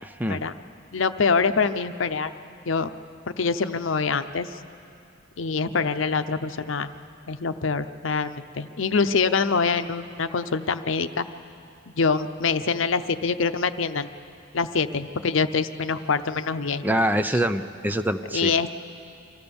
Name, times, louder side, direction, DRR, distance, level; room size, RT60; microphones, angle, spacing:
voice 1, 0.0-0.4 16.8-18.5, right 1 dB, 10° right, 8 dB, 0.5 m, -25 dB
voice 2, 0.9-2.3 2.7-2.9 3.3-4.5 5.4-6.9 7.3-11.3 12.0-14.1 14.5-16.8 17.8-17.9 18.3-18.8, left 5 dB, 85° left, 10 dB, 0.7 m, -25 dB
25.0 x 15.5 x 7.0 m, 2.6 s
head